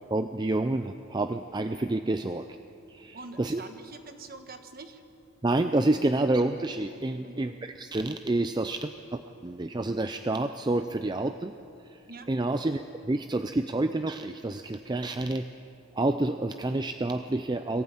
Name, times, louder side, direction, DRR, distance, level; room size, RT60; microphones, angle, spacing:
voice 1, 0.1-2.5 2.9-3.6 5.4-11.5 11.9-12.0 12.3-15.5 15.9-17.8, right 2 dB, 20° right, 8 dB, 0.4 m, -28 dB
voice 2, 3.1-5.0 7.2-7.6 12.1-12.3, right 3 dB, 40° right, 7 dB, 1.4 m, -45 dB
22.5 x 15.0 x 8.9 m, 2.7 s
head